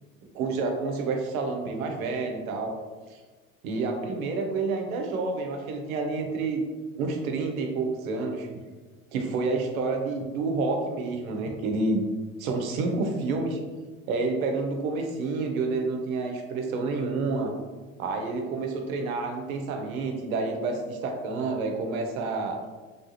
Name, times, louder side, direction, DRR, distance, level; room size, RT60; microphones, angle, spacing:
voice 1, 0.3-2.7 3.1-3.2 3.6-6.6 7.0-8.5 9.1-12.0 12.4-13.6 14.1-17.5 18.0-22.6, right 3 dB, 85° right, 3 dB, 0.6 m, -29 dB
3.4 x 2.4 x 2.7 m, 1.3 s
hypercardioid pair, 85°, 41 cm